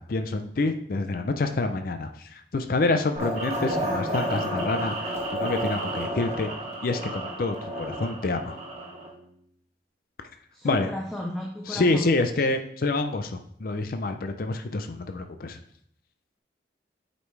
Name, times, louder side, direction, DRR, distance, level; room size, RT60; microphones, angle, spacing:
voice 1, 0.0-6.5 6.8-8.6 10.6-10.9 11.7-15.6, left 3 dB, 50° left, 7 dB, 0.4 m, -27 dB
sound 1, 3.2-9.1, right 1 dB, 35° right, 1.6 m, -31 dB
Bowed string instrument, 4.7-9.5, right 1 dB, 70° left, 2.6 m, -51 dB
voice 2, 10.5-12.1, left 1 dB, 5° left, -2 dB, 0.7 m, -33 dB
8.0 x 5.1 x 3.2 m, 0.68 s
head